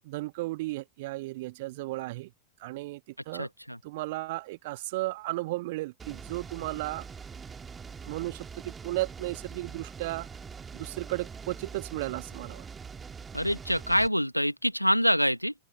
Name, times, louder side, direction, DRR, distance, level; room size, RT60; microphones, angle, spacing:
voice 1, 0.0-2.3 2.6-3.5 3.8-7.1 8.0-10.3 10.7-12.7, right 20 dB, 50° right, 1.4 m, -34 dB
voice 2, 3.3-3.8 13.3-15.5, equal, 90° left, 1.5 m, -26 dB
sound 1, 6.0-14.1, right 6 dB, 15° right, 2.2 m, -43 dB
open air
figure-of-eight pair, 90°, 0 cm